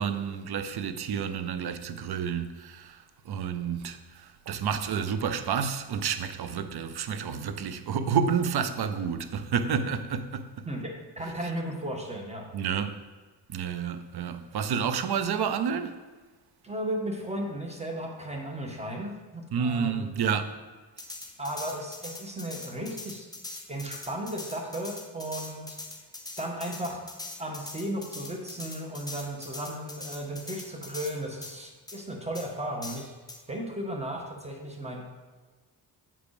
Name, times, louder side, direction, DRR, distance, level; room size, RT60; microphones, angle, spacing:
voice 1, 0.0-10.7 12.5-13.0 13.5-16.0 19.5-20.6, right 7 dB, 65° right, 0.7 m, -30 dB
voice 2, 10.6-12.5 16.6-20.1 21.4-23.3 23.7-25.8 26.4-27.0 27.4-33.1 33.5-35.0, right 1 dB, 15° right, 1.6 m, -35 dB
sound 1, 21.0-31.2 31.4-31.5 31.9-32.0 32.3-32.5 32.8-33.4, left 2 dB, 10° left, 1.2 m, -41 dB
7.3 x 5.1 x 5.0 m
cardioid pair, 75°, 41 cm